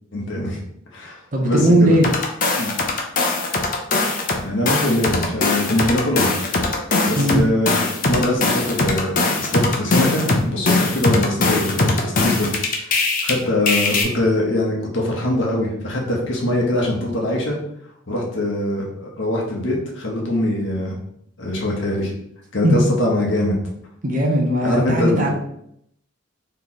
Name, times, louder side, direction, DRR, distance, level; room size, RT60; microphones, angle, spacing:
voice 1, 0.1-0.6 0.9-2.0 2.5-2.7 4.4-6.3 7.0-7.8 8.1-12.5 13.2-17.6 18.1-21.0 21.4-22.1 22.5-23.5 24.6-25.3, left 1 dB, 65° left, -1 dB, 1.1 m, -22 dB
voice 2, 1.3-2.1 7.2-7.5 22.6-22.8 24.0-25.3, right 1 dB, 40° right, 1 dB, 0.7 m, -17 dB
sound 1, 2.0-4.4 4.7-13.3 13.7-14.0, left 3 dB, 40° left, 0.6 m, -20 dB
3.3 x 2.9 x 4.0 m, 0.72 s
head